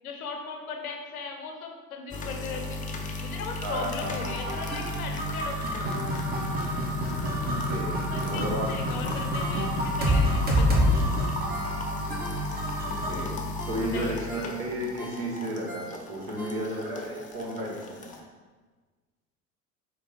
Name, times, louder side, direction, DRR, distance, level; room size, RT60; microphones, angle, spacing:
voice 1, 0.0-2.8 3.2-5.6 8.1-10.9 13.9-14.2, left 4 dB, 80° left, 3 dB, 0.7 m, -38 dB
sound 1, 2.1-18.2, left 2 dB, 20° left, 0.4 m, -36 dB
voice 2, 3.6-4.0 7.4-7.9 8.2-8.7 10.6-10.9 12.9-13.3 13.6-18.1, right 1 dB, 55° right, -2 dB, 1.4 m, -33 dB
sound 2, 4.0-13.3, equal, 20° right, 0.9 m, -28 dB
Ringtone, 9.4-12.9 13.3-13.4 13.6-17.0 17.4-17.5, right 1 dB, 90° right, 0.8 m, -45 dB
4.5 x 2.3 x 4.2 m, 1.4 s
hypercardioid pair, 70°, 43 cm